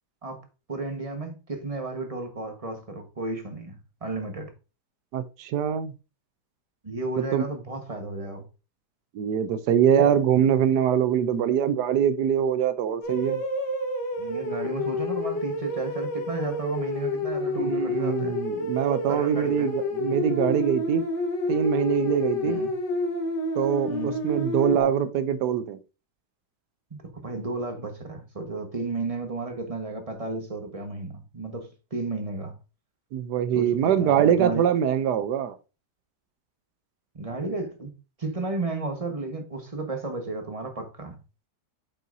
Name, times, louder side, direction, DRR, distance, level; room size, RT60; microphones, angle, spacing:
voice 1, 0.7-4.5 6.8-8.4 14.2-18.4 19.1-19.7 22.4-22.7 23.9-24.2 26.9-32.6 33.5-34.7 37.1-37.9 38.2-41.2, right 3 dB, 20° right, 1.2 m, -33 dB
voice 2, 5.1-5.9 7.2-7.4 9.1-13.4 17.6-21.0 21.5-22.6 23.5-25.8 33.1-35.6, right 8 dB, 80° right, 1.2 m, -23 dB
sound 1, 13.0-24.8, left 2 dB, 80° left, 1.9 m, -29 dB
8.8 x 5.5 x 2.6 m
omnidirectional pair, 1.8 m